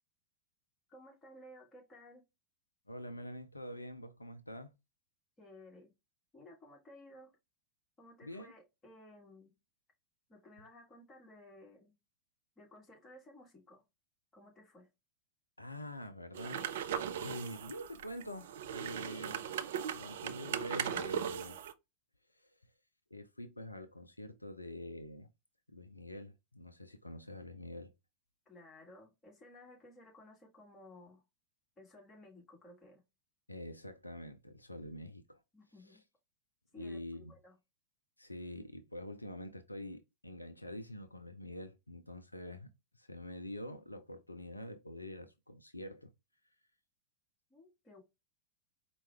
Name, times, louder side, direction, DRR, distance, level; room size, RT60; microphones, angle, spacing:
voice 1, 0.9-2.2 5.4-5.9 6.3-7.3 8.0-9.5 10.3-11.9 12.6-13.8 14.3-14.9 28.5-31.2 31.8-33.0 35.5-36.0 36.7-37.5 47.5-48.0, left 1 dB, 20° left, 1.7 m, -56 dB
voice 2, 2.9-4.7 8.2-8.5 15.6-19.4 19.9-21.6 22.3-22.7 23.1-25.3 25.7-27.9 33.5-35.4 35.8-36.0 36.8-37.3 38.2-46.1, left 1 dB, 85° left, 0.4 m, -46 dB
sound 1, 16.3-21.7, right 9 dB, 60° right, 0.3 m, -39 dB
4.5 x 2.3 x 3.2 m
figure-of-eight pair, 90°, 0 cm